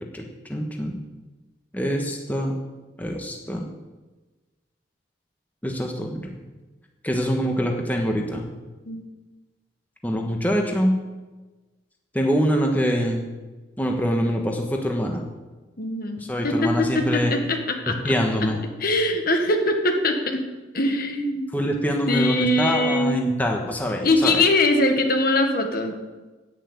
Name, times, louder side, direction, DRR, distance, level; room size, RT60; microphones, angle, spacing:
voice 1, 0.5-0.9 1.7-2.5 3.0-3.7 5.6-6.3 7.0-8.5 10.0-11.0 12.1-13.2 13.8-15.2 16.2-17.3 17.9-18.6 21.5-24.4, equal, 10° left, 1 dB, 1.3 m, -24 dB
voice 2, 15.8-16.2 16.4-18.1 18.8-20.4 20.7-21.5 22.1-23.3 24.0-26.0, left 2 dB, 50° left, 5 dB, 1.5 m, -22 dB
10.0 x 9.2 x 8.4 m, 1.2 s
head